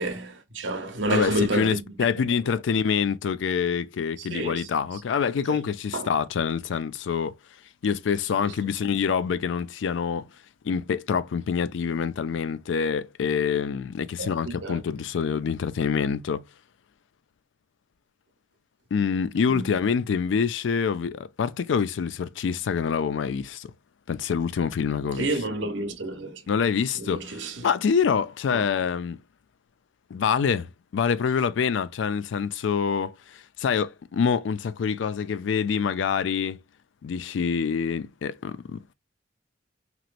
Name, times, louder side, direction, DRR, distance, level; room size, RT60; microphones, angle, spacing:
voice 1, 0.0-1.8 4.2-4.7 5.5-5.6 5.9-6.1 8.4-8.5 14.2-14.8 19.5-19.7 25.2-26.4 27.0-27.6 28.5-28.7, right 2 dB, 75° right, 0.9 m, -29 dB
voice 2, 1.1-7.4 7.8-10.3 10.6-16.4 18.9-23.7 24.1-25.3 26.5-29.2 30.1-30.7 30.9-36.6 37.0-38.9, left 6 dB, 75° left, 0.4 m, -26 dB
2.9 x 2.9 x 2.4 m
head